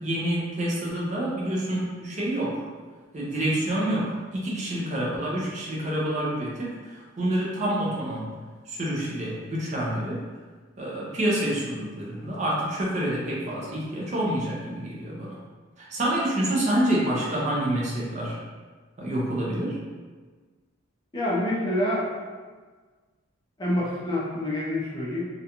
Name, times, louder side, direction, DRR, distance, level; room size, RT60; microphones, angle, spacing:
voice 1, 0.0-2.7 3.1-8.3 8.7-10.2 10.8-15.4 15.8-18.4 19.0-19.8, right 1 dB, 35° right, -4 dB, 0.4 m, -27 dB
voice 2, 21.1-22.3 23.6-25.3, left 1 dB, 20° left, -6 dB, 0.5 m, -27 dB
2.5 x 2.2 x 2.8 m, 1.4 s
head